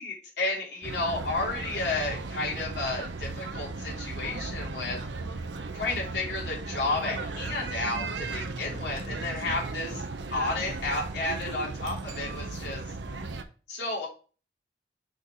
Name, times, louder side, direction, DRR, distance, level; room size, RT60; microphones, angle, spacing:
voice 1, 0.0-5.0 5.7-10.0 10.3-12.8 13.7-14.1, left 2 dB, 75° left, -3 dB, 3.1 m, -32 dB
sound 1, 0.8-13.4, right 3 dB, 90° right, 0.8 m, -36 dB
6.3 x 4.2 x 4.9 m, 0.37 s
head